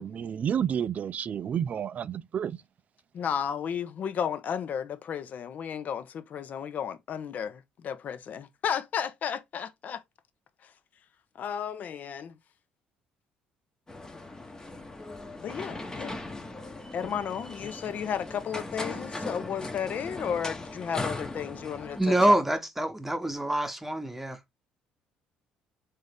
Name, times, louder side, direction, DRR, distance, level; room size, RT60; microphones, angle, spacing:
voice 1, 0.0-2.6, right 8 dB, 50° right, 0.4 m, -30 dB
voice 2, 3.1-10.0 11.4-12.3 15.4-16.2 16.9-22.4, left 8 dB, 55° left, 0.7 m, -33 dB
sound 1, 13.9-22.0, left 2 dB, 20° left, 1.0 m, -38 dB
voice 3, 22.0-24.4, right 1 dB, 5° right, 1.0 m, -25 dB
3.7 x 2.8 x 3.4 m
hypercardioid pair, 60°, 3 cm